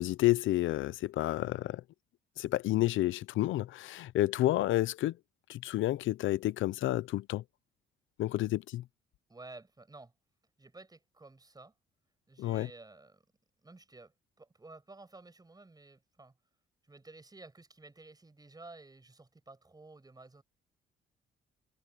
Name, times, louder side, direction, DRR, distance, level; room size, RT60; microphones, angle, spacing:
voice 1, 0.0-1.8 2.4-5.1 5.5-7.4 8.2-8.8 12.4-12.7, left 16 dB, 80° left, 0.7 m, -30 dB
voice 2, 9.3-10.1 10.6-11.7 12.3-13.2 13.6-16.4 16.8-20.4, right 2 dB, 20° right, 7.5 m, -53 dB
cardioid pair, 90°, 20 cm